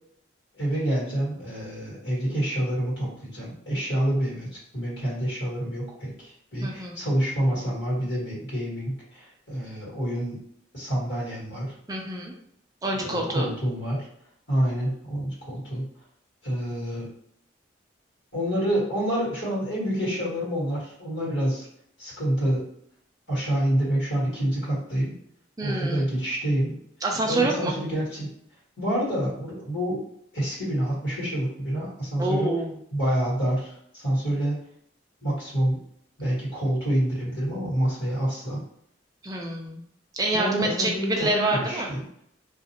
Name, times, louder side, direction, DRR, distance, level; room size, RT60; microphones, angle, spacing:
voice 1, 0.5-10.4 10.7-11.7 13.0-14.1 14.5-15.9 16.4-17.1 18.3-21.6 22.0-22.7 23.3-25.1 25.6-26.8 27.2-28.3 28.8-30.0 30.3-32.5 32.9-34.6 35.2-35.8 36.2-38.6 40.3-42.0, right 1 dB, 65° left, -7 dB, 1.5 m, -27 dB
voice 2, 6.6-6.9 11.9-12.3 12.8-13.5 25.6-26.0 27.0-27.7 32.2-32.7 39.2-39.8 40.1-41.9, right 2 dB, 20° right, 0 dB, 0.4 m, -27 dB
2.4 x 2.3 x 2.8 m, 0.70 s
head